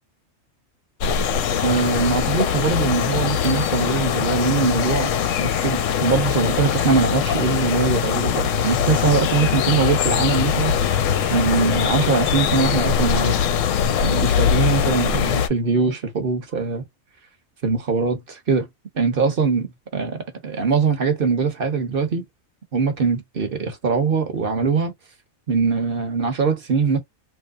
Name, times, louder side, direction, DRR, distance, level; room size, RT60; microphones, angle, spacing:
sound 1, 1.0-15.5, left 8 dB, 75° left, 0.9 m, -21 dB
voice 1, 1.6-5.1 5.4-11.0 11.3-13.5 14.0-16.8 17.6-18.7 18.9-22.2 22.7-24.9 25.5-27.0, right 5 dB, 50° right, 0.9 m, -22 dB
3.0 x 2.7 x 2.4 m
omnidirectional pair, 1.4 m